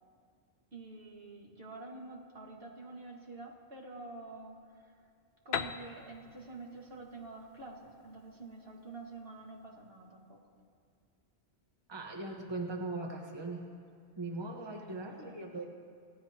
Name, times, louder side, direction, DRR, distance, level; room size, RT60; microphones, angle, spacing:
voice 1, 0.7-5.1 5.5-10.4 14.7-15.7, right 3 dB, 60° right, 0 dB, 2.0 m, -48 dB
Piano, 5.5-9.2, left 7 dB, 70° left, 0.8 m, -41 dB
voice 2, 11.9-13.7 14.2-15.7, right 2 dB, 25° right, 1 dB, 1.2 m, -39 dB
29.5 x 16.0 x 2.9 m, 2.3 s
omnidirectional pair, 1.1 m